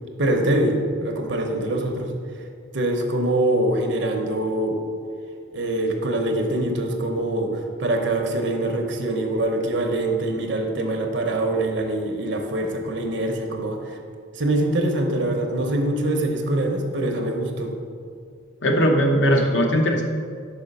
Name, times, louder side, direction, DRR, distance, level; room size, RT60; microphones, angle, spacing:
voice 1, 0.2-2.1 2.7-4.8 5.5-14.0 14.3-17.7, right 1 dB, 65° right, 3 dB, 0.8 m, -24 dB
voice 2, 18.6-20.0, equal, 65° left, 2 dB, 0.8 m, -19 dB
5.4 x 5.0 x 5.4 m, 2.2 s
head